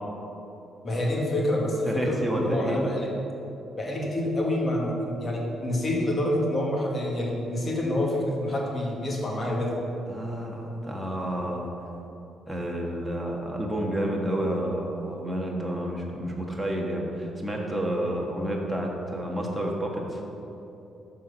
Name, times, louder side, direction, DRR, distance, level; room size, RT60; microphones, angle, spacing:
voice 1, 0.8-3.1 3.8-9.8, left 1 dB, 35° left, -2 dB, 2.2 m, -27 dB
voice 2, 1.8-2.8 10.1-11.7 12.5-20.2, right 1 dB, 5° right, -2 dB, 1.7 m, -30 dB
13.5 x 4.9 x 5.5 m, 3.0 s
cardioid pair, 90°, 0 cm